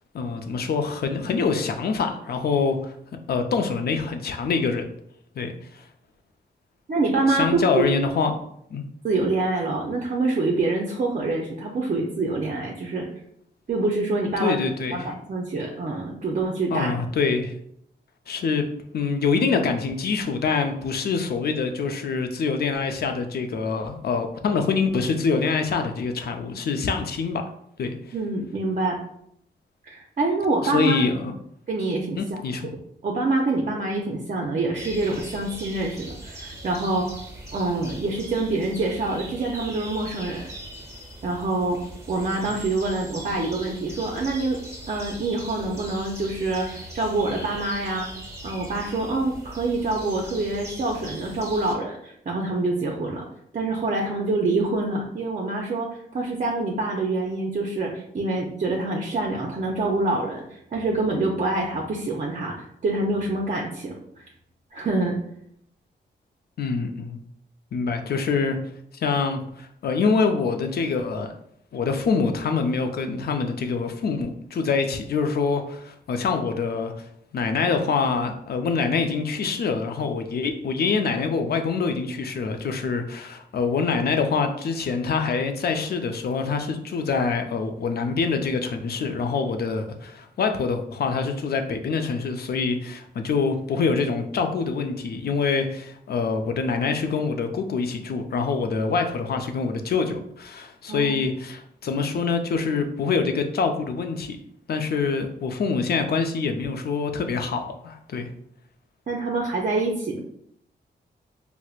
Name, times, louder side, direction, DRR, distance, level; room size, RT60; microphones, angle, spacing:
voice 1, 0.1-2.9 3.3-4.8 5.4-5.5 7.3-8.3 8.7-8.8 14.4-15.1 16.7-17.5 18.3-18.6 18.9-27.4 27.8-27.9 30.6-31.3 32.2-32.7 66.6-67.2 67.7-68.6 68.9-71.3 71.7-77.0 77.3-104.4 104.7-108.3, left 5 dB, 60° left, 6 dB, 0.5 m, -25 dB
voice 2, 6.9-7.8 9.0-13.1 13.7-14.6 14.9-16.9 28.1-29.0 29.8-31.0 31.7-32.4 32.7-37.1 37.5-40.5 41.2-41.8 42.1-44.6 44.9-48.1 48.4-53.3 53.5-64.3 64.7-65.1 100.9-101.1 109.1-110.2, right 2 dB, 45° right, -1 dB, 0.5 m, -26 dB
sound 1, 34.7-51.7, right 1 dB, 15° right, 1.1 m, -40 dB
4.3 x 2.1 x 2.4 m, 0.71 s
cardioid pair, 85°, 19 cm